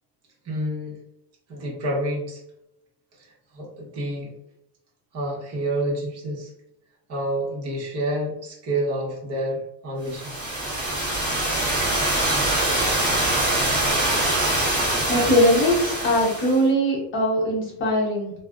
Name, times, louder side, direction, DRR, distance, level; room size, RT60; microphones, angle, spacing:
voice 1, 0.4-1.0 1.5-2.4 3.1-4.3 5.1-6.5 7.1-10.3, right 1 dB, 30° right, -4 dB, 1.1 m, -28 dB
sound 1, 10.1-16.6, right 1 dB, 10° left, 1.4 m, -24 dB
voice 2, 15.1-18.3, equal, 25° left, -3 dB, 0.9 m, -21 dB
3.2 x 2.3 x 2.4 m, 0.78 s
cardioid pair, 155°, 49 cm